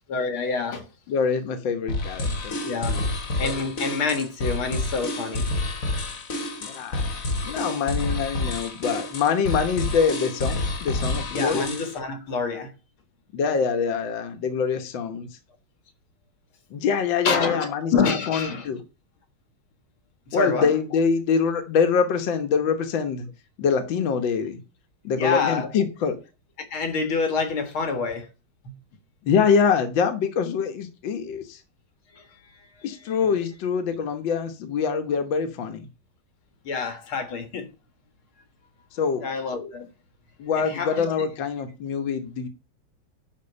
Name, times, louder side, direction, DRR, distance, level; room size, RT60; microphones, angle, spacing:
voice 1, 0.1-0.9 2.6-3.0 3.4-5.5 7.5-7.6 11.3-12.7 17.2-18.7 20.3-20.7 25.1-25.7 26.7-28.3 28.6-28.7 32.1-33.3 36.6-37.7 39.2-39.9 40.6-41.1, left 5 dB, 85° left, 2.5 m, -27 dB
voice 2, 1.1-2.6 2.9-3.1 6.6-7.1 7.4-11.7 13.3-15.3 16.7-17.9 18.3-18.8 20.3-23.3 23.6-24.6 25.0-26.2 29.2-31.6 32.8-35.9 38.9-39.2 40.4-42.5, left 6 dB, 70° left, 1.9 m, -24 dB
sound 1, 1.9-12.0, left 2 dB, 45° left, 1.6 m, -29 dB
11.0 x 4.4 x 6.9 m
omnidirectional pair, 2.2 m